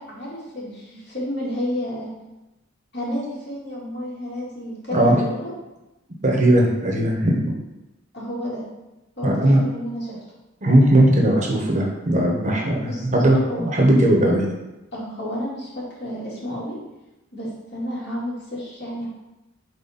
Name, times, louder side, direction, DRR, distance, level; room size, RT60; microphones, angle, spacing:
voice 1, 0.0-2.1 2.9-5.5 8.1-8.6 9.2-10.2 12.8-13.1 13.5-13.6 14.9-16.8 17.3-19.1, equal, 60° left, -6 dB, 2.1 m, -31 dB
voice 2, 4.9-5.2 6.2-7.5 9.2-9.6 10.6-14.5, right 1 dB, 35° right, 0 dB, 1.0 m, -18 dB
4.2 x 4.1 x 5.6 m, 1.0 s
head